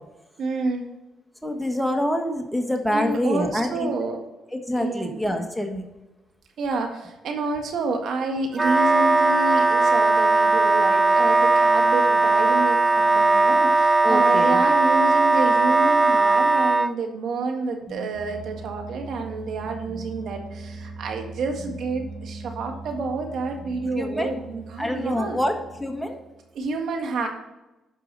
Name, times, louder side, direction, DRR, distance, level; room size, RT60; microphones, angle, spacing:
voice 1, 0.4-0.8 2.9-4.2 4.7-5.2 6.6-25.4 26.5-27.3, right 3 dB, 70° right, 4 dB, 1.7 m, -29 dB
voice 2, 1.4-4.2 4.5-5.9 14.0-14.6 23.9-24.4 24.8-26.2, equal, ahead, 3 dB, 1.5 m, -26 dB
Wind instrument woodwind instrument, 8.5-16.9, right 3 dB, 20° right, 0.4 m, -18 dB
sound 1, 17.7-26.5, right 2 dB, 35° left, 2.4 m, -40 dB
12.5 x 4.8 x 4.0 m, 1.0 s
cardioid pair, 90°, 0 cm